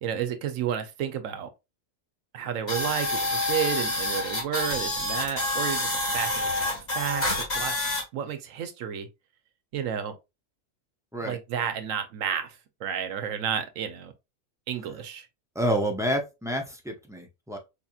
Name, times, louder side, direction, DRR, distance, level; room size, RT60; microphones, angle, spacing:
voice 1, 0.0-1.5 2.3-7.8 8.1-9.1 9.7-10.2 11.2-14.1 14.7-15.3, right 8 dB, 75° right, 1.0 m, -31 dB
sound 1, 2.7-8.0, left 2 dB, 30° left, 1.6 m, -28 dB
voice 2, 15.5-17.6, equal, 5° right, 0.3 m, -28 dB
4.8 x 2.8 x 2.3 m
omnidirectional pair, 1.4 m